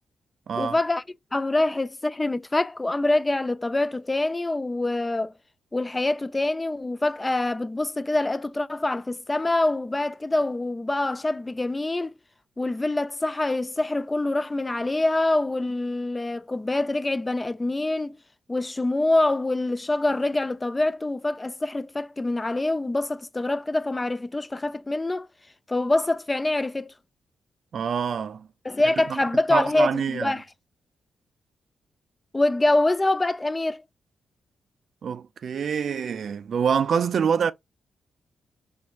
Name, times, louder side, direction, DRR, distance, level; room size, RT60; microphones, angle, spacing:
voice 1, 0.6-1.0 1.3-5.3 5.7-12.1 12.6-18.2 18.5-25.3 25.7-26.9 28.7-30.4 32.3-33.8, left 2 dB, 20° left, 0.3 m, -25 dB
voice 2, 27.7-28.5 29.1-29.2 29.5-30.3 35.0-37.5, right 7 dB, 65° right, 0.3 m, -26 dB
4.3 x 2.5 x 2.7 m
supercardioid pair, 60°, 0 cm